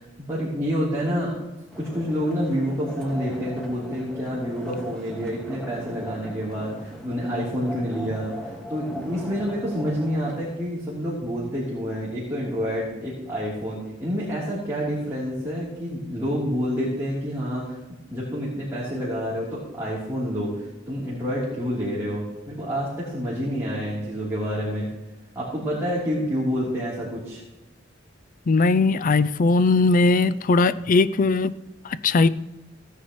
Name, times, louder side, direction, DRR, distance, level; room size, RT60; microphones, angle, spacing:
voice 1, 0.0-1.3 1.8-17.8 18.1-24.9 25.3-27.4, equal, 15° right, -8 dB, 3.3 m, -28 dB
sound 1, 1.7-10.5, equal, 5° left, 1.7 m, -39 dB
voice 2, 28.5-31.5 31.8-32.3, left 3 dB, 45° left, 14 dB, 0.4 m, -19 dB
17.0 x 10.0 x 3.1 m, 1.0 s
head